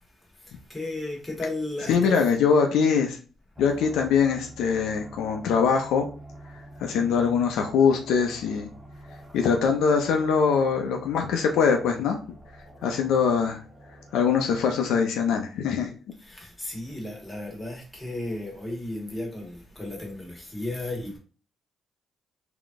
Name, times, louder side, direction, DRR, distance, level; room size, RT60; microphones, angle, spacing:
voice 1, 0.5-2.3 16.2-21.2, left 1 dB, 10° left, 1.8 m, -34 dB
voice 2, 1.9-3.2 3.6-6.1 6.5-8.7 9.3-12.2 12.8-13.6 14.1-15.9, left 6 dB, 85° left, 0.7 m, -23 dB
sound 1, 3.6-14.8, right 1 dB, 10° right, 1.0 m, -47 dB
3.8 x 3.0 x 3.6 m
cardioid pair, 90°, 0 cm